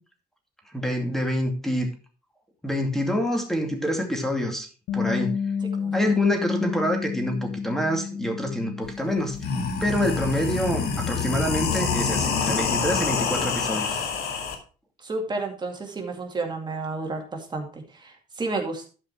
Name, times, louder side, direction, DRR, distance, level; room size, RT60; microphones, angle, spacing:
voice 1, 0.7-1.9 2.6-4.7 4.9-5.4 5.9-9.4 9.8-14.0, equal, ahead, 3 dB, 2.6 m, -26 dB
Bass guitar, 4.9-11.1, left 6 dB, 85° left, 1.0 m, -31 dB
voice 2, 5.8-6.1 15.0-18.9, right 3 dB, 25° right, 2 dB, 2.3 m, -31 dB
sound 1, 8.8-8.9 9.3-14.5, left 5 dB, 70° left, 2.0 m, -26 dB
12.0 x 5.1 x 4.6 m, 0.37 s
cardioid pair, 110°, 17 cm